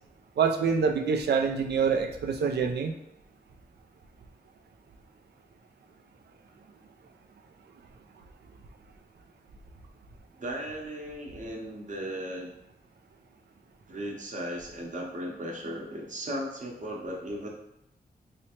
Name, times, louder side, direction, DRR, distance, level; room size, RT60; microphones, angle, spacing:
voice 1, 0.4-2.9, right 6 dB, 85° right, 5 dB, 0.4 m, -26 dB
voice 2, 10.4-12.5 13.9-17.5, equal, 50° right, -1 dB, 0.8 m, -36 dB
3.3 x 2.8 x 2.9 m, 0.85 s
wide cardioid pair, 110°, 17 cm